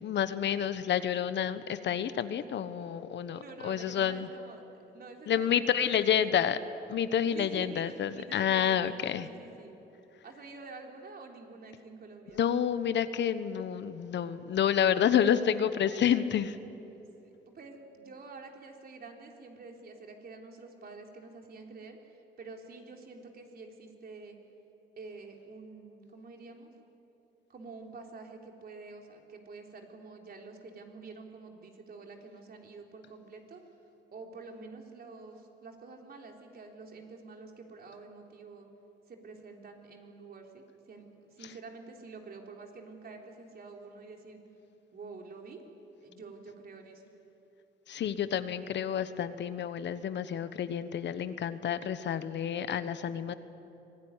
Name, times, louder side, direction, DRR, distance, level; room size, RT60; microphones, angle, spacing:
voice 1, 0.0-4.3 5.3-6.6 6.9-9.3 12.3-16.6 47.9-53.3, left 9 dB, 65° left, 12 dB, 1.2 m, -29 dB
voice 2, 3.3-6.3 7.3-9.7 10.2-12.4 17.2-24.4 25.0-26.7 27.5-33.6 34.1-38.7 39.1-44.4 44.9-45.6 46.0-47.0, right 3 dB, 50° right, 2 dB, 3.7 m, -48 dB
24.5 x 17.5 x 9.9 m, 3.0 s
cardioid pair, 90°, 20 cm